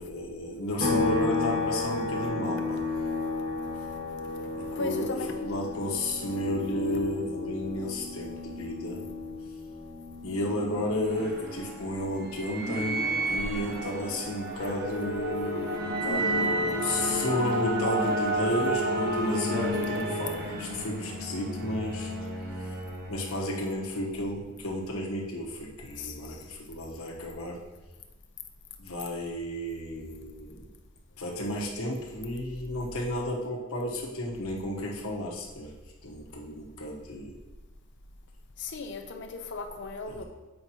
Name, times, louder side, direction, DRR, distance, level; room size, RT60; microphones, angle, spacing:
voice 1, 0.0-2.8 4.6-9.0 10.2-13.0 13.3-22.1 22.6-22.8 23.1-27.6 28.8-30.7 31.2-35.7 36.0-37.3 40.1-40.2, left 1 dB, 80° left, -2 dB, 1.2 m, -33 dB
sound 1, 0.8-14.3 14.7-16.9, left 3 dB, 65° right, 2.1 m, -34 dB
voice 2, 4.7-5.3 17.1-17.2 26.0-26.5 38.6-40.2, left 3 dB, 55° left, 5 dB, 0.6 m, -37 dB
sound 2, 10.6-24.2, right 1 dB, 50° right, 0.8 m, -31 dB
7.8 x 5.0 x 2.9 m, 1.2 s
head